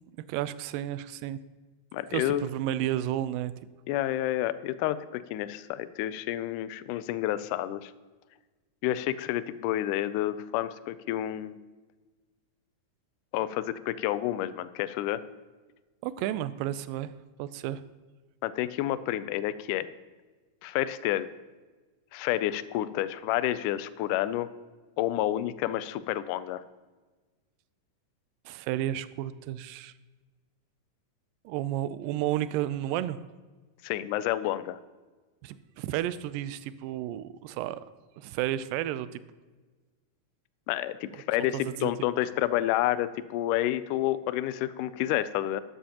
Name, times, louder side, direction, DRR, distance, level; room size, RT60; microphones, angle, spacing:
voice 1, 0.3-1.4 2.1-3.5 16.0-17.1 17.4-17.8 28.5-29.9 31.5-33.2 35.4-37.8 38.2-39.2 41.5-41.9, right 13 dB, 85° right, 15 dB, 2.2 m, -32 dB
voice 2, 1.9-2.5 3.9-7.9 8.8-11.6 13.3-15.2 18.4-19.9 20.6-21.3 22.1-24.5 25.0-26.6 33.8-34.8 40.7-45.6, left 13 dB, 80° left, 14 dB, 1.9 m, -29 dB
12.5 x 11.5 x 2.9 m, 1.3 s
omnidirectional pair, 4.0 m